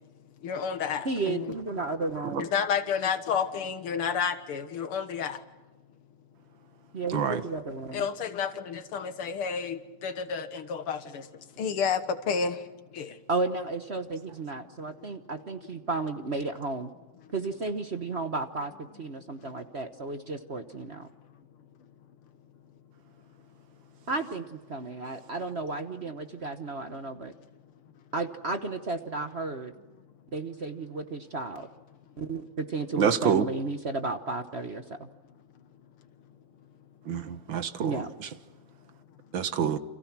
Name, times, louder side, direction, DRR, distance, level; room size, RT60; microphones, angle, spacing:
voice 1, 0.4-1.5 2.4-5.4 7.9-13.2 19.4-19.5, left 6 dB, 85° left, 2.4 m, -31 dB
voice 2, 1.0-2.5 6.9-8.1 13.3-16.9 17.3-21.1 24.1-27.3 28.1-29.7 30.3-31.7 32.2-35.1 37.8-38.1, right 3 dB, 40° right, 1.1 m, -33 dB
voice 3, 33.0-33.4 37.1-38.0 39.3-39.8, right 8 dB, 65° right, 1.9 m, -26 dB
29.5 x 27.5 x 6.1 m
omnidirectional pair, 2.4 m